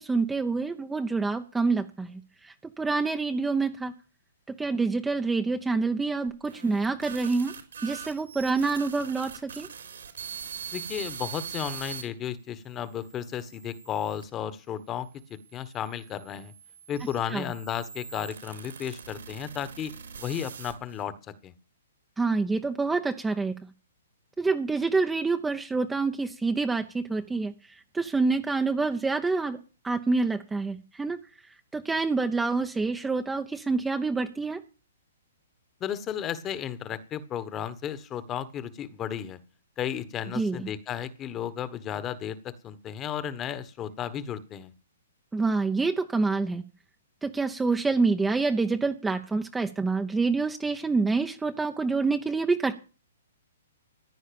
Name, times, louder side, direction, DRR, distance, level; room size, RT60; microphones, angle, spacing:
voice 1, 0.0-3.9 4.5-7.5 7.8-9.7 17.3-17.5 22.2-23.6 24.4-27.5 27.9-29.6 29.8-31.2 31.7-34.6 40.3-40.7 45.3-46.6 47.2-52.8, right 4 dB, 5° right, 6 dB, 0.8 m, -27 dB
sound 1, 6.3-12.0 12.7-14.2 15.0-21.0, right 7 dB, 80° right, 4.3 m, -42 dB
voice 2, 10.7-15.1 15.5-16.5 16.9-19.9 20.2-21.1 21.4-21.5 35.8-39.4 39.8-44.7, left 9 dB, 20° left, 14 dB, 1.3 m, -34 dB
15.0 x 9.9 x 7.0 m, 0.36 s
hypercardioid pair, 150°, 0 cm